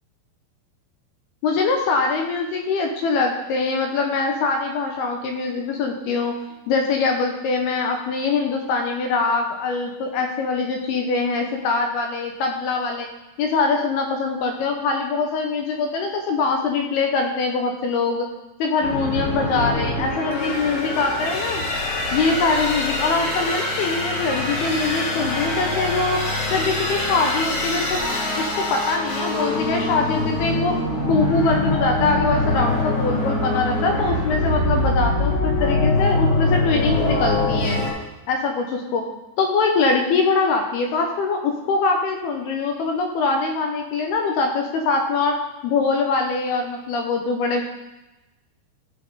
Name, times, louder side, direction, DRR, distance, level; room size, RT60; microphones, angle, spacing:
voice 1, 1.4-6.4 6.7-13.1 13.4-18.3 18.6-21.6 22.1-26.2 26.5-28.0 28.4-30.8 31.1-37.8 38.3-39.1 39.4-45.4 45.6-47.6, left 4 dB, 75° left, 3 dB, 2.6 m, -23 dB
sound 1, 18.8-37.9, left 2 dB, 55° left, 3.9 m, -23 dB
15.0 x 5.9 x 3.9 m, 1.0 s
omnidirectional pair, 5.2 m